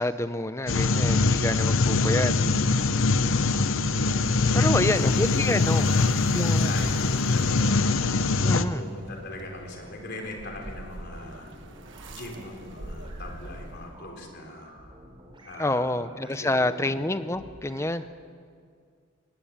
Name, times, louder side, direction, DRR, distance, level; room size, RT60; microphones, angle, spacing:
voice 1, 0.0-2.3 4.5-5.8 6.3-6.7 8.4-8.8 15.6-18.0, left 1 dB, 15° left, 12 dB, 0.6 m, -27 dB
sound 1, 0.7-8.7, left 3 dB, 65° left, 0.8 m, -23 dB
sound 2, 0.8-18.0, right 1 dB, 20° right, 4.2 m, -50 dB
voice 2, 3.0-3.6 4.6-5.3 5.8-8.1 8.7-11.5 12.1-14.7 15.4-15.9 16.4-16.9, left 2 dB, 50° left, 2 dB, 3.9 m, -41 dB
sound 3, 3.7-14.1, right 2 dB, 55° right, 1.4 m, -45 dB
19.5 x 17.5 x 8.8 m, 2.1 s
head